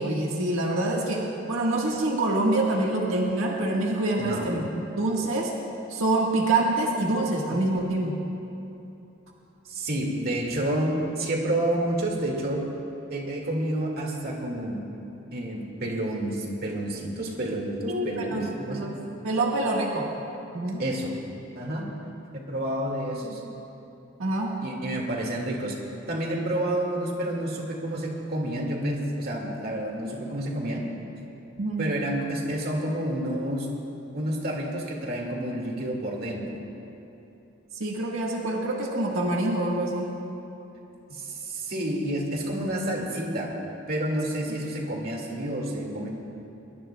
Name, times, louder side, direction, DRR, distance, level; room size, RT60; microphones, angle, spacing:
voice 1, 0.0-5.5 5.9-8.1 17.9-19.0 19.2-20.1 20.5-20.9 24.2-24.6 31.6-31.9 37.7-40.1, right 2 dB, 80° right, -2 dB, 1.5 m, -26 dB
voice 2, 4.2-4.5 7.5-7.8 9.7-12.6 13.1-14.8 15.3-18.9 20.8-21.1 21.6-21.9 22.3-23.4 24.6-25.8 26.1-30.8 31.8-33.7 34.1-36.4 41.1-43.5 43.9-46.1, right 1 dB, 50° right, 0 dB, 2.0 m, -29 dB
22.0 x 21.0 x 2.3 m, 2.9 s
head